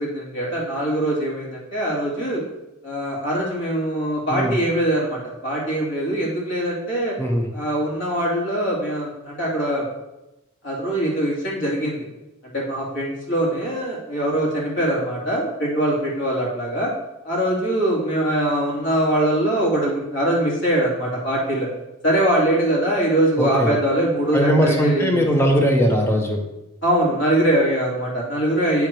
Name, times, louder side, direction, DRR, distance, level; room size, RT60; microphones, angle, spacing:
voice 1, 0.0-2.4 2.8-7.2 7.5-9.9 10.6-12.1 12.4-16.9 17.2-21.7 22.0-25.3 26.8-28.9, right 1 dB, 60° left, -4 dB, 2.7 m, -22 dB
voice 2, 23.4-23.8 24.3-26.4, equal, 10° left, 2 dB, 1.0 m, -19 dB
9.0 x 3.7 x 4.6 m, 0.96 s
head